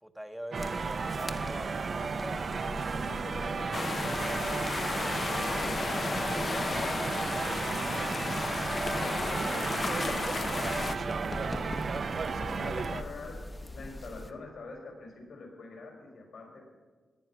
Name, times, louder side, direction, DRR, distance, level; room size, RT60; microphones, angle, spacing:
voice 1, 0.0-2.4 6.5-7.8, equal, 5° right, 9 dB, 0.9 m, -43 dB
sound 1, 0.5-14.3, left 2 dB, 20° left, 0.9 m, -43 dB
sound 2, 0.5-13.0, right 5 dB, 50° right, 0.6 m, -34 dB
voice 2, 3.0-4.7 5.0-6.4 9.0-10.5 11.3-11.9 12.4-13.4 13.7-16.7, left 3 dB, 75° left, 2 dB, 4.7 m, -45 dB
sound 3, 3.7-11.0, left 4 dB, 40° left, 0.5 m, -33 dB
17.5 x 10.5 x 5.9 m, 1.5 s
wide cardioid pair, 120°, 0 cm